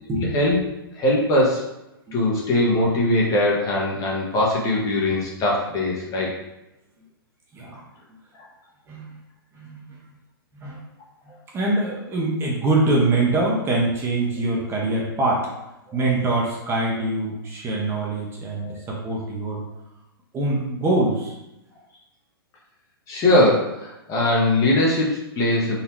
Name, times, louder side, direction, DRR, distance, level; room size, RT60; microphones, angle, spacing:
voice 1, 0.2-0.6 0.9-1.7 2.1-6.3 8.3-8.4 15.9-16.0 18.6-18.8 23.1-25.8, left 1 dB, 25° left, -3 dB, 1.2 m, -21 dB
voice 2, 8.9-9.2 9.5-10.0 10.6-10.8 11.5-15.5 15.9-19.6 20.3-21.3, right 2 dB, 20° right, -3 dB, 1.0 m, -24 dB
4.1 x 2.8 x 4.6 m, 0.91 s
hypercardioid pair, 120°, 13 cm